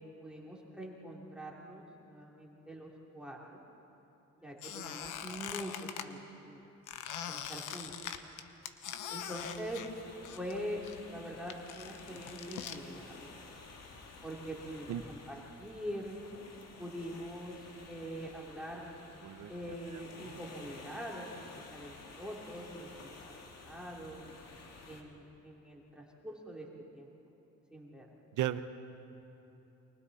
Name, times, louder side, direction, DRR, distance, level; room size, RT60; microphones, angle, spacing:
voice 1, 0.0-3.6 4.4-6.6 7.3-8.1 9.1-9.8 10.3-10.8 11.1-13.4 14.2-16.3 16.8-18.9 19.5-23.2 23.6-24.3 24.9-26.7 26.9-27.1 27.7-28.1, equal, 5° right, -3 dB, 3.2 m, -44 dB
Squeak, 4.6-6.1 6.9-10.6 10.8-12.8, left 9 dB, 85° left, 1.0 m, -42 dB
sound 1, 9.4-25.0, left 3 dB, 60° left, 2.3 m, -52 dB
voice 2, 14.9-15.0 19.2-19.5 20.1-20.4 28.3-28.6, right 13 dB, 75° right, 12 dB, 0.9 m, -35 dB
29.0 x 25.0 x 4.2 m, 2.9 s
cardioid pair, 90°, 30 cm